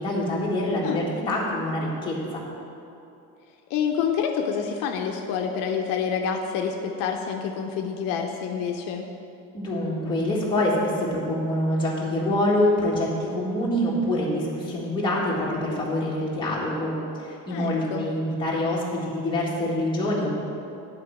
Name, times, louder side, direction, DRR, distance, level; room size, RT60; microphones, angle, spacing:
voice 1, 0.0-2.4 9.5-17.0 17.2-20.4, left 1 dB, 15° left, -6 dB, 1.7 m, -25 dB
voice 2, 3.7-9.1 17.5-18.1, left 7 dB, 70° left, 3 dB, 0.7 m, -28 dB
10.5 x 4.5 x 7.4 m, 2.7 s
cardioid pair, 170°, 34 cm